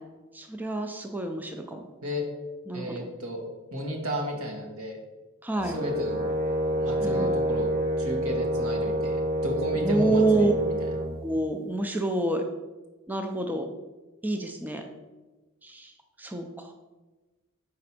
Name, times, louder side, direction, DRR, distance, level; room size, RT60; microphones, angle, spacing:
voice 1, 0.3-1.8 2.7-2.9 5.4-5.7 7.0-7.3 9.8-10.5 11.2-12.4 13.1-13.6 14.2-14.8 15.6-15.9 16.2-16.5, right 2 dB, 10° right, 4 dB, 0.4 m, -27 dB
voice 2, 2.7-3.4 3.7-5.0 5.6-6.3 6.8-7.7 8.0-10.7, equal, 75° right, 2 dB, 1.3 m, -33 dB
Brass instrument, 5.6-11.1, equal, 45° right, 1.8 m, -28 dB
4.9 x 4.2 x 5.8 m, 1.2 s
head